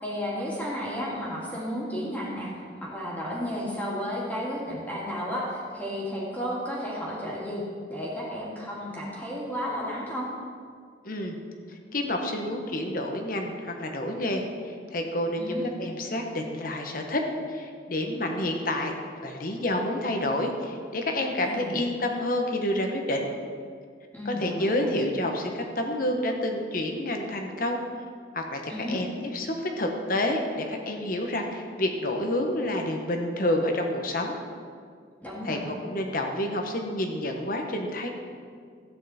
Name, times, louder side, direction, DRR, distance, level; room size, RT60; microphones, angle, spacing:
voice 1, 0.0-7.6 7.9-10.3 15.4-15.6 21.4-21.8 24.1-24.9 28.7-29.0 35.2-35.7, equal, 10° left, -6 dB, 2.5 m, -33 dB
voice 2, 11.0-11.4 11.9-17.2 17.5-18.9 19.2-23.3 24.2-27.8 28.3-34.3 35.4-35.6 35.9-38.1, left 1 dB, 50° left, 3 dB, 1.2 m, -29 dB
13.5 x 9.4 x 4.3 m, 2.1 s
head